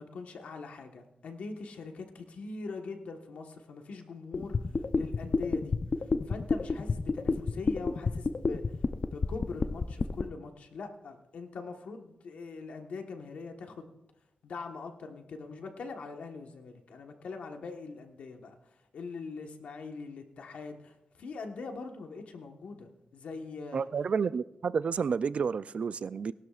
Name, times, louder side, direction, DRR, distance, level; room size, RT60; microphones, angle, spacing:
voice 1, 0.0-4.6 4.9-5.8 6.2-8.6 9.0-13.9 14.4-18.6 18.9-23.9, left 4 dB, 85° left, 1.3 m, -42 dB
sound 1, 4.3-10.2, left 4 dB, 50° left, 0.6 m, -29 dB
voice 2, 23.7-26.3, right 6 dB, 65° right, 0.4 m, -30 dB
20.0 x 12.0 x 2.5 m
cardioid pair, 70°, 2 cm